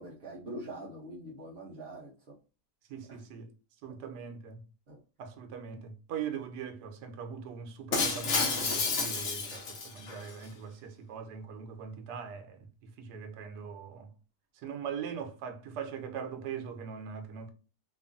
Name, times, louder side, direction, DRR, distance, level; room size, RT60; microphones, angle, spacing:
voice 1, 0.0-2.1 3.1-3.2 4.9-5.0, right 1 dB, 55° right, 0.7 m, -43 dB
voice 2, 2.9-3.5 3.8-4.6 5.2-14.1 14.5-17.5, right 7 dB, 85° right, 1.1 m, -41 dB
Shatter, 7.9-10.3, left 4 dB, 60° left, 0.9 m, -30 dB
2.9 x 2.4 x 2.4 m
omnidirectional pair, 1.7 m